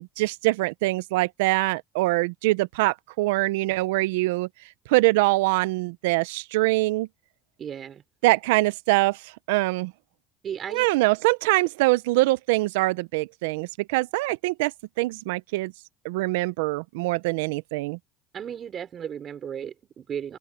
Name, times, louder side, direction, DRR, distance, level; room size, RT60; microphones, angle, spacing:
voice 1, 0.0-4.5 4.9-7.1 8.2-9.9 10.7-14.7 15.0-15.7 16.0-18.0, right 21 dB, 85° right, 0.5 m, -24 dB
voice 2, 7.6-8.0 10.4-10.9 18.3-20.4, right 8 dB, 45° right, 4.7 m, -35 dB
open air
supercardioid pair, 80°, 0 cm